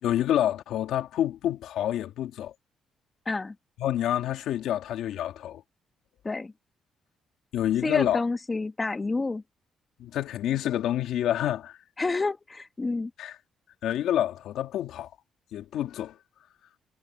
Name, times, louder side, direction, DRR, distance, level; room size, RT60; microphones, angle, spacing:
voice 1, 0.0-2.5 3.8-5.6 7.5-8.2 10.0-11.8 13.2-13.4 13.8-15.1 15.5-16.2, left 11 dB, 80° left, 1.9 m, -28 dB
voice 2, 7.8-9.4 12.0-13.1, left 3 dB, 25° left, 1.5 m, -29 dB
cardioid pair, 90°, 0 cm